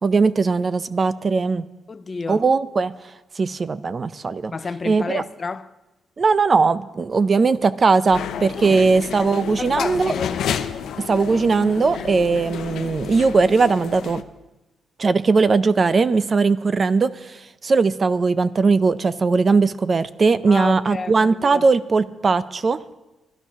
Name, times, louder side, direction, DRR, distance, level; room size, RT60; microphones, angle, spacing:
voice 1, 0.0-1.6 2.3-2.9 3.4-4.5 4.9-5.2 6.2-10.1 11.1-14.2 15.0-22.8, right 4 dB, 40° right, 0.5 m, -19 dB
voice 2, 1.9-2.5 4.5-5.7 8.6-8.8 9.6-10.4 20.5-21.7, left 4 dB, 40° left, 0.6 m, -30 dB
sound 1, 8.1-14.2, left 8 dB, 80° left, 0.7 m, -30 dB
12.0 x 11.5 x 5.9 m
cardioid pair, 80°, 0 cm